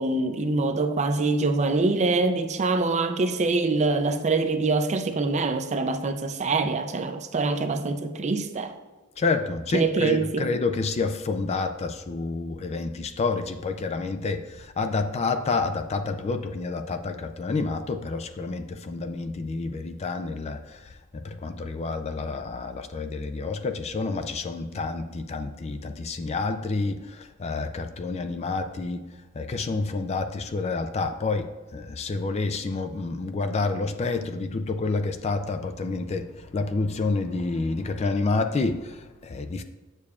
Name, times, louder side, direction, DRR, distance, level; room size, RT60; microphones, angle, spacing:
voice 1, 0.0-8.7 9.7-10.5, right 3 dB, 35° right, 8 dB, 0.5 m, -24 dB
voice 2, 9.2-29.1 29.3-39.6, left 3 dB, 30° left, 8 dB, 0.3 m, -29 dB
8.4 x 6.7 x 2.4 m, 1.2 s
head